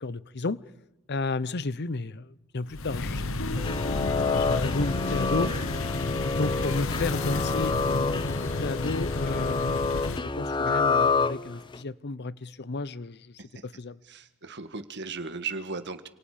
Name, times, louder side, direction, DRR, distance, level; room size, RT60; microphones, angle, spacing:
voice 1, 0.0-0.6 1.1-5.5 6.3-13.3 13.6-14.0, left 3 dB, 50° left, 0.8 m, -33 dB
sound 1, 2.7-10.2, left 2 dB, 70° left, 1.1 m, -31 dB
sound 2, 3.6-11.8, left 4 dB, 20° left, 0.7 m, -28 dB
voice 2, 5.4-5.8 13.4-13.6 14.0-16.1, right 4 dB, 55° right, 1.7 m, -37 dB
29.0 x 27.5 x 5.1 m
head